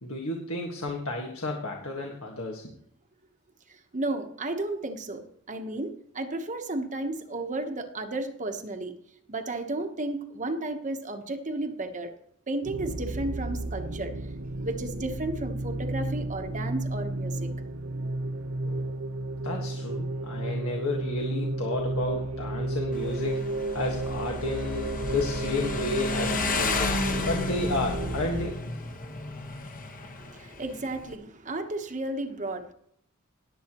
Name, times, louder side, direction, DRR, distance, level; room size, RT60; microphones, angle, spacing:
voice 1, 0.0-2.7 18.6-18.8 19.4-23.4 23.7-27.0 27.3-28.6, left 2 dB, 75° left, 1.6 m, -32 dB
voice 2, 3.9-5.2 5.5-8.9 9.3-12.1 12.5-14.1 14.6-17.5 30.3-32.7, right 2 dB, 35° right, 1.1 m, -33 dB
sound 1, 12.6-28.5, right 2 dB, 65° right, 0.7 m, -32 dB
Motorcycle, 22.9-31.2, left 3 dB, 40° left, 1.2 m, -33 dB
18.5 x 8.0 x 3.0 m
head